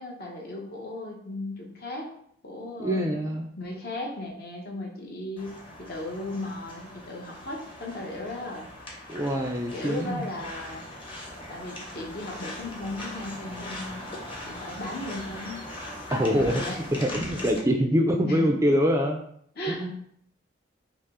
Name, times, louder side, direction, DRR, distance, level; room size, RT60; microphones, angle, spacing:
voice 1, 0.0-2.1 2.4-3.0 3.6-5.5 5.8-8.7 9.7-10.8 11.5-14.0 14.4-15.6 16.3-16.8 18.3-18.5 19.6-19.9, left 2 dB, 55° left, 0 dB, 0.9 m, -36 dB
voice 2, 2.8-3.5 9.1-10.3 16.1-19.2 19.7-19.9, equal, 15° right, 3 dB, 0.3 m, -25 dB
sound 1, 5.4-17.6, left 1 dB, 25° left, 0.9 m, -40 dB
5.3 x 2.0 x 3.6 m, 0.67 s
head